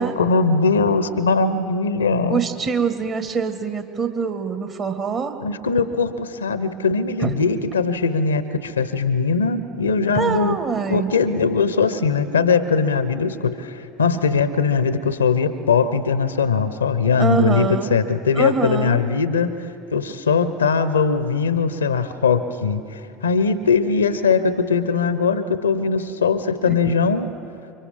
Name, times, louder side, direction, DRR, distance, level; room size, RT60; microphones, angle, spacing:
voice 1, 0.0-2.4 5.4-10.6 10.9-19.6 19.9-27.3, left 5 dB, 80° left, 13 dB, 0.8 m, -20 dB
voice 2, 2.3-5.4 7.2-7.3 10.1-11.1 17.2-18.0 18.3-19.0 26.7-26.8, right 5 dB, 40° right, 7 dB, 2.0 m, -24 dB
29.0 x 24.5 x 3.7 m, 2.6 s
figure-of-eight pair, 70°, 0 cm